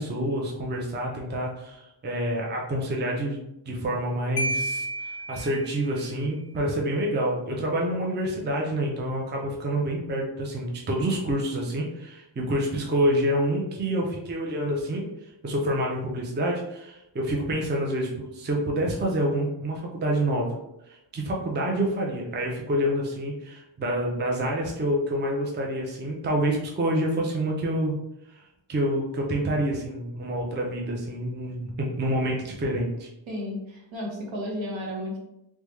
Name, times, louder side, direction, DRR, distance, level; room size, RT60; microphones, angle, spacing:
voice 1, 0.0-4.9 5.3-15.1 15.4-20.6 20.9-27.9 28.3-28.4 28.7-33.1, right 1 dB, 25° right, -1 dB, 0.4 m, -27 dB
Marimba xylophone, 4.4-6.1, right 1 dB, 55° left, 0.6 m, -31 dB
voice 2, 33.3-35.2, left 1 dB, 70° right, -2 dB, 1.0 m, -33 dB
3.4 x 2.1 x 3.0 m, 0.86 s
wide cardioid pair, 150°, 47 cm